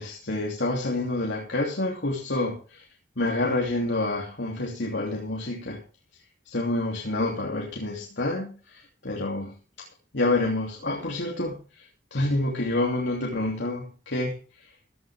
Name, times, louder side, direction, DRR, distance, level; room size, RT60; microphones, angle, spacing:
voice 1, 0.0-2.8 3.2-5.8 6.5-9.5 10.1-11.9 12.1-14.4, left 2 dB, 85° left, -1 dB, 2.9 m, -28 dB
15.5 x 11.5 x 3.6 m, 0.37 s
head